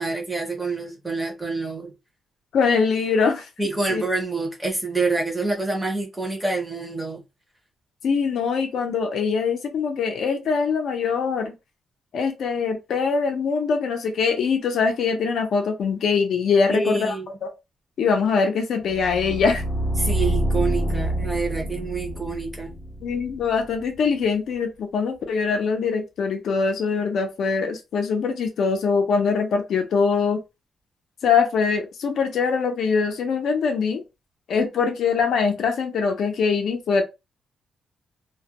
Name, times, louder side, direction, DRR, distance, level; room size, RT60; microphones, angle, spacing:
voice 1, 0.0-1.9 3.6-7.2 16.7-17.3 20.0-22.7, right 3 dB, 10° right, 0.5 m, -27 dB
voice 2, 2.5-3.5 3.9-4.0 8.0-11.5 12.1-17.2 17.4-17.5 18.0-19.6 23.0-30.4 31.2-34.0 34.5-37.0, left 5 dB, 60° left, 0.5 m, -23 dB
sound 1, 18.8-23.8, right 1 dB, 35° left, 0.8 m, -27 dB
2.2 x 2.1 x 2.8 m
wide cardioid pair, 180°, 0 cm